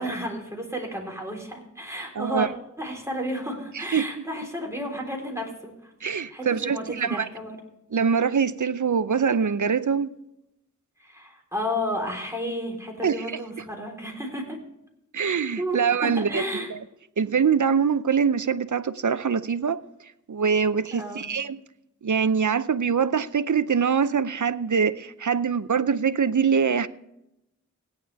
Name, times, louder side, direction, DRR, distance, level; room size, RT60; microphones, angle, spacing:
voice 1, 0.0-2.5 2.8-5.9 6.3-7.6 11.0-14.6 15.6-16.7 20.9-21.2, equal, 10° right, 3.9 m, -32 dB
voice 2, 2.2-2.5 3.7-4.1 6.0-7.3 7.9-10.1 13.0-13.4 15.1-16.4 16.7-16.8 17.2-19.8 20.3-21.6 22.0-26.9, right 6 dB, 75° right, 0.6 m, -24 dB
16.5 x 10.0 x 3.5 m
wide cardioid pair, 45°, 31 cm